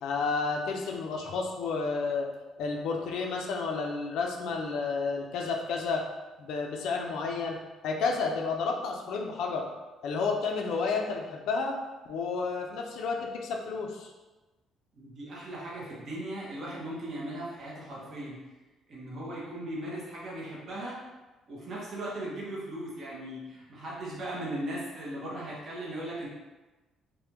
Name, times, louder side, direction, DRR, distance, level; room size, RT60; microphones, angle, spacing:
voice 1, 0.0-2.3 2.6-6.0 6.4-7.6 7.8-9.7 10.0-11.8 12.1-14.1, left 4 dB, 70° left, 1 dB, 0.4 m, -31 dB
voice 2, 14.9-18.4 18.9-21.0 21.5-26.3, right 1 dB, 35° right, -6 dB, 0.8 m, -38 dB
3.4 x 2.2 x 2.9 m, 1.1 s
cardioid pair, 175°, 0 cm